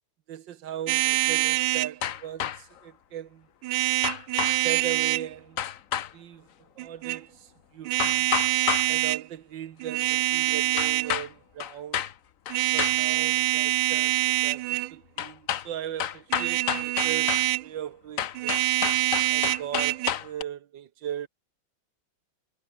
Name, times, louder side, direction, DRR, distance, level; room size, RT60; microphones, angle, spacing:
voice 1, 0.3-3.5 4.5-5.6 6.1-8.3 8.9-12.1 12.7-18.6 19.3-21.3, right 10 dB, 65° right, 1.6 m, -38 dB
sound 1, 0.9-1.9 3.6-5.3 6.8-7.2 7.8-9.2 9.8-11.2 12.5-14.9 16.3-17.7 18.3-20.1, right 18 dB, 80° right, 1.4 m, -25 dB
sound 2, 2.0-2.8 4.0-4.6 5.6-6.1 8.0-8.9 10.8-11.3 11.6-12.1 12.5-13.0 15.2-15.7 16.0-17.5 18.2-20.4, left 10 dB, 55° left, 1.0 m, -30 dB
omnidirectional pair, 2.2 m